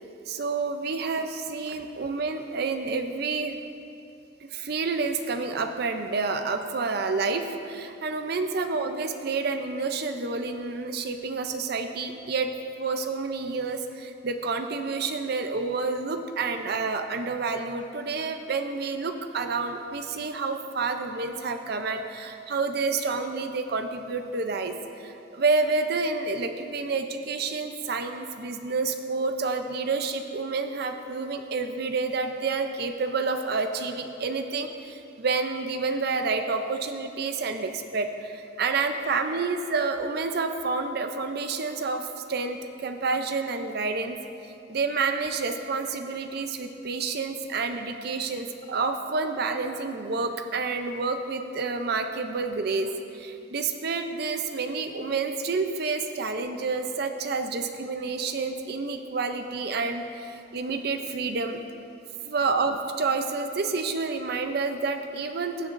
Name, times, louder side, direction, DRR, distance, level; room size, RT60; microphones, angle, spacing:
voice 1, 0.3-3.6 4.4-12.5 12.8-42.0 42.3-44.2 44.7-61.6 62.3-65.7, right 4 dB, 55° right, 7 dB, 0.6 m, -29 dB
16.0 x 6.8 x 2.6 m, 2.7 s
head